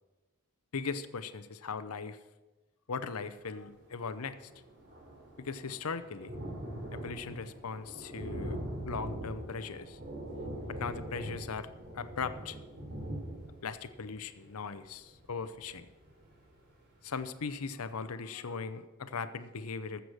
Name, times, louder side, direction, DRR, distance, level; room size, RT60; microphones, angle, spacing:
voice 1, 0.7-2.2 2.9-4.5 5.4-6.3 6.9-8.6 8.9-10.0 10.7-11.7 11.9-12.6 13.6-15.9 17.0-20.0, left 5 dB, 75° left, 12 dB, 0.7 m, -39 dB
Thunder, 3.8-3.9 4.1-16.7 17.2-17.3 17.6-17.7, right 1 dB, 50° right, 3.4 m, -42 dB
14.0 x 6.9 x 6.4 m, 1.2 s
head